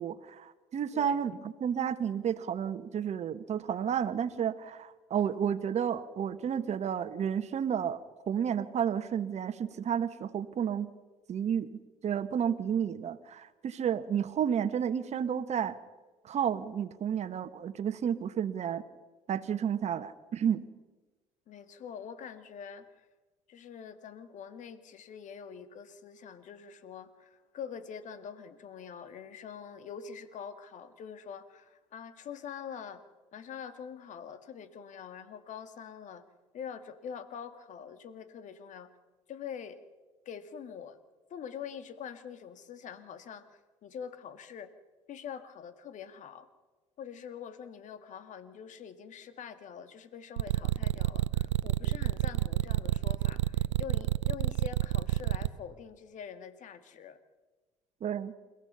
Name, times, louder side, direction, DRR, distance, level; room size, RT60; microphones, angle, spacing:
voice 1, 0.0-8.0 8.3-10.9 11.3-11.7 12.0-15.8 16.2-18.8 19.3-20.6 58.0-58.3, right 8 dB, 45° right, 12 dB, 1.4 m, -31 dB
voice 2, 21.5-23.1 23.5-33.0 33.3-36.3 36.5-38.9 39.3-39.8 40.3-41.0 41.3-44.7 45.1-46.5 47.0-57.2, left 7 dB, 55° left, 11 dB, 2.0 m, -44 dB
sound 1, 50.4-55.5, right 14 dB, 85° right, 0.6 m, -28 dB
29.5 x 16.0 x 5.6 m, 1.2 s
hypercardioid pair, 65°, 15 cm